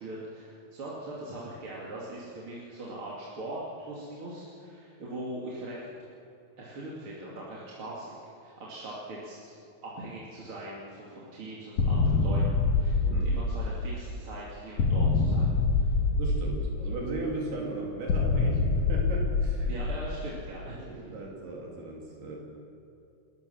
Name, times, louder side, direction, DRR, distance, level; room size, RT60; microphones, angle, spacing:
voice 1, 0.0-5.8 6.6-9.5 9.8-15.9 19.6-21.0, right 1 dB, 35° right, -6 dB, 2.9 m, -41 dB
sound 1, 11.8-14.1 14.8-17.1 18.1-20.4, left 3 dB, 85° left, 1.3 m, -26 dB
voice 2, 16.2-19.7 20.8-22.4, right 2 dB, 70° right, -2 dB, 4.8 m, -36 dB
29.0 x 14.0 x 7.2 m, 2.5 s
omnidirectional pair, 4.8 m